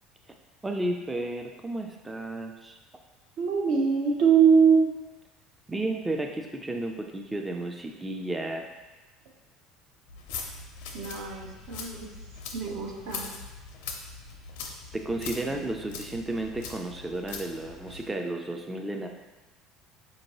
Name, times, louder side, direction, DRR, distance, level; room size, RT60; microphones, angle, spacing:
voice 1, 0.6-2.8 5.7-8.7 14.9-19.1, right 2 dB, 15° right, 3 dB, 0.3 m, -33 dB
voice 2, 3.4-4.9 10.9-12.1 12.5-13.2, right 6 dB, 70° right, 0 dB, 0.6 m, -23 dB
sound 1, 10.1-18.1, left 5 dB, 85° left, 0.5 m, -41 dB
4.5 x 2.6 x 2.9 m, 1.1 s
supercardioid pair, 100°, 0 cm